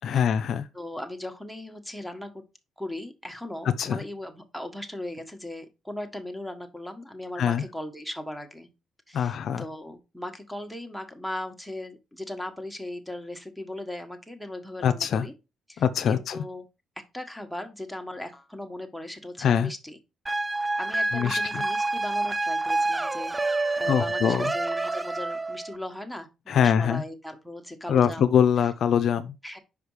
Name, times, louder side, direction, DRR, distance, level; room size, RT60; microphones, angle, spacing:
voice 1, 0.0-0.7 3.8-4.0 7.4-7.6 9.1-9.6 14.8-15.3 15.8-16.4 19.4-19.7 21.1-21.6 23.9-24.5 26.5-27.0 27.9-29.4, left 8 dB, 65° left, 0.5 m, -23 dB
voice 2, 0.7-2.3 2.8-8.7 9.1-15.3 15.7-16.6 17.1-20.0 20.8-23.3 23.8-28.3 29.4-29.6, left 1 dB, ahead, 1.4 m, -38 dB
sound 1, 20.3-25.8, right 2 dB, 15° right, 0.4 m, -28 dB
5.2 x 5.0 x 4.8 m
cardioid pair, 90°, 0 cm